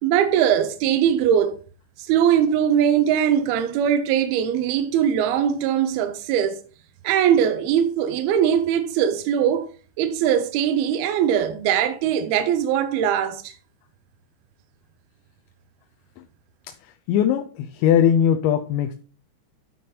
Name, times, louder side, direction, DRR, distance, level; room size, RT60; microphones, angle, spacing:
voice 1, 0.0-1.6 2.0-6.6 7.0-9.7 10.0-13.5, right 9 dB, 80° right, 2.4 m, -21 dB
voice 2, 17.1-18.9, left 9 dB, 85° left, 3.0 m, -19 dB
12.5 x 4.5 x 5.1 m
omnidirectional pair, 5.1 m